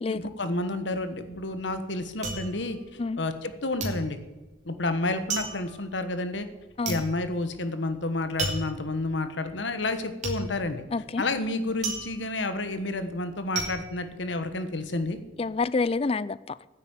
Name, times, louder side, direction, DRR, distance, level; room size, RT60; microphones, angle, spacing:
voice 1, 0.1-2.8 3.2-4.2 4.6-6.5 6.9-10.8 11.2-15.2, left 2 dB, 70° left, 1.3 m, -30 dB
sound 1, 1.1-3.5 3.8-14.9 15.2-15.8, right 3 dB, 40° right, 2.9 m, -35 dB
voice 2, 10.9-11.2 15.4-16.6, left 4 dB, 30° left, 0.4 m, -28 dB
10.0 x 8.3 x 8.8 m
head